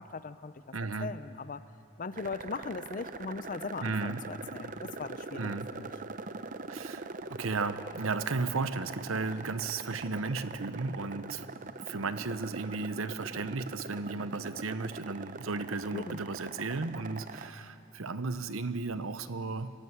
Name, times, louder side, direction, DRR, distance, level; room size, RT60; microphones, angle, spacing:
voice 1, 0.0-0.7 1.0-1.6 2.0-5.9 15.9-16.2, left 4 dB, 40° left, 15 dB, 0.5 m, -39 dB
voice 2, 0.7-1.2 3.8-4.2 5.4-5.7 6.7-11.4 11.9-19.7, right 3 dB, 75° right, 12 dB, 0.9 m, -34 dB
sound 1, 2.1-17.5, right 3 dB, 40° right, 0.7 m, -43 dB
24.5 x 14.0 x 9.5 m, 2.8 s
head